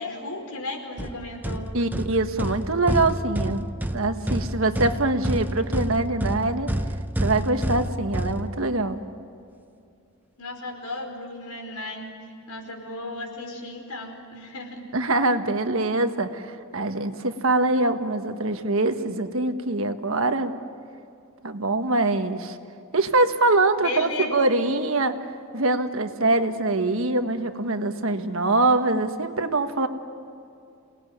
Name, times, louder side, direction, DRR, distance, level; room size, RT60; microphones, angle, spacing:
voice 1, 0.0-1.7 10.4-12.1 12.5-14.9 23.8-24.5, left 2 dB, 85° left, 3 dB, 4.8 m, -34 dB
sound 1, 1.0-9.0, right 1 dB, 10° right, 0.6 m, -29 dB
voice 2, 1.7-3.7 3.9-6.7 7.2-9.0 14.9-20.6 21.4-22.6 22.9-25.2 25.5-29.9, right 2 dB, 65° right, 7 dB, 1.5 m, -23 dB
28.0 x 19.5 x 9.4 m, 2.5 s
head